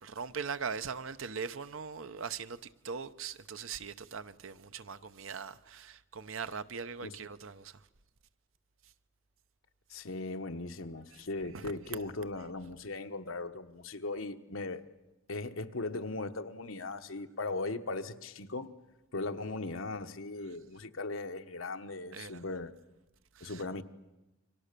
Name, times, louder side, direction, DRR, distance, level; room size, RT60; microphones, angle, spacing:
voice 1, 0.0-7.8 11.1-11.2 11.5-11.7 22.1-22.4 23.3-23.6, right 6 dB, 85° right, 0.9 m, -41 dB
voice 2, 9.9-14.8 15.3-18.7 19.1-22.7 23.4-23.8, left 3 dB, 90° left, 1.2 m, -38 dB
29.0 x 24.5 x 6.8 m
head